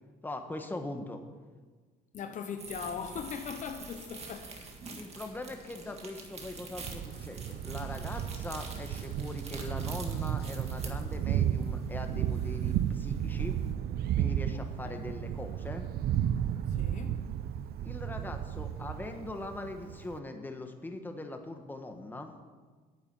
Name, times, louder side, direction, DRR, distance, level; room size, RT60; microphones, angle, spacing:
voice 1, 0.2-1.2 5.0-13.6 14.2-15.9 17.8-22.3, left 2 dB, 10° left, 1.4 m, -41 dB
voice 2, 2.1-4.6 14.5-15.0 16.7-17.2, left 6 dB, 50° left, 0.8 m, -40 dB
sound 1, 2.6-13.7, right 3 dB, 40° right, 1.9 m, -46 dB
sound 2, 3.5-12.0, left 3 dB, 75° left, 3.4 m, -60 dB
Thunder, 6.8-20.2, right 10 dB, 65° right, 0.6 m, -33 dB
10.0 x 7.1 x 8.8 m
cardioid pair, 110°, 17 cm